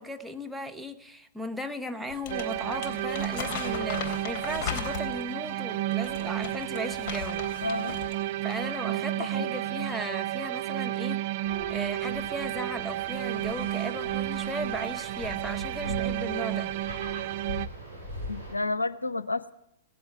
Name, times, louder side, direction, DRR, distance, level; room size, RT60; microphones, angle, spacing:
voice 1, 0.0-7.4 8.4-11.2 11.7-16.7, equal, 5° right, 5 dB, 1.0 m, -36 dB
Crumpling crinkling, 2.1-5.3 5.9-8.2 8.5-8.7, left 7 dB, 35° left, 3.0 m, -37 dB
sound 1, 2.3-17.7, right 14 dB, 45° right, 0.5 m, -32 dB
voice 2, 7.6-8.0 9.2-9.5 18.3-19.5, left 2 dB, 85° left, 16 dB, 0.6 m, -31 dB
sound 2, 11.4-18.5, left 1 dB, 80° right, 5.5 m, -41 dB
17.0 x 7.9 x 9.2 m, 0.81 s
figure-of-eight pair, 105°, 0 cm